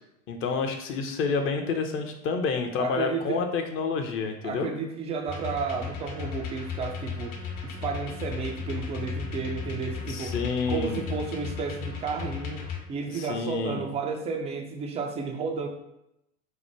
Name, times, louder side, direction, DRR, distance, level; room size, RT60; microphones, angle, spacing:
voice 1, 0.3-4.7 10.1-11.0 13.1-13.8, left 5 dB, 30° left, 5 dB, 0.6 m, -29 dB
voice 2, 2.8-3.4 4.4-10.4 10.7-12.6 12.9-15.7, right 5 dB, 15° right, 3 dB, 0.3 m, -32 dB
sound 1, 5.3-12.8, left 6 dB, 55° left, 1.0 m, -35 dB
4.4 x 2.1 x 4.5 m, 0.84 s
hypercardioid pair, 85°, 45 cm